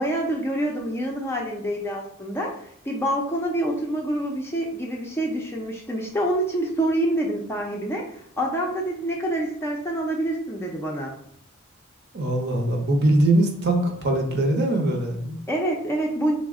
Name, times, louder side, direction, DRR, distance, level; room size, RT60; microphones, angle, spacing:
voice 1, 0.0-11.2 15.5-16.3, right 1 dB, 10° left, -1 dB, 0.4 m, -27 dB
voice 2, 12.1-15.3, right 1 dB, 50° right, 2 dB, 0.7 m, -22 dB
4.0 x 2.0 x 3.5 m, 0.69 s
head